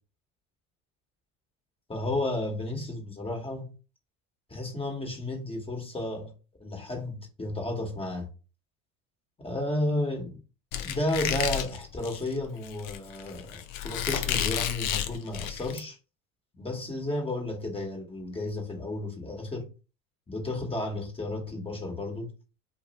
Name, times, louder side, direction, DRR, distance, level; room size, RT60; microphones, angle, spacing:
voice 1, 1.9-3.7 4.5-6.3 6.6-8.3 9.4-10.4 10.8-16.0 16.6-19.7 20.3-22.3, left 1 dB, 15° left, 1.0 m, -32 dB
Squeak, 10.7-15.8, left 10 dB, 55° left, 0.5 m, -31 dB
2.5 x 2.0 x 3.9 m
hypercardioid pair, 90°, 40 cm